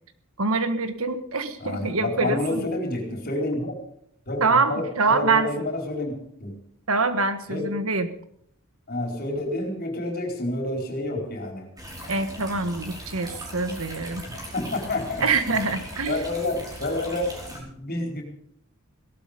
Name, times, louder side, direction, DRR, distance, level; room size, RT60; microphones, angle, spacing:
voice 1, 0.4-2.6 4.4-5.5 6.9-8.1 12.1-14.2 15.2-16.2, right 3 dB, 75° right, 10 dB, 1.6 m, -25 dB
voice 2, 1.6-3.8 4.3-6.1 6.4-6.5 7.5-7.7 8.9-11.7 14.4-15.3 16.1-18.2, left 1 dB, 45° left, 2 dB, 4.5 m, -29 dB
sound 1, 11.8-17.6, equal, 20° right, 5.2 m, -39 dB
18.0 x 12.5 x 5.2 m, 0.68 s
head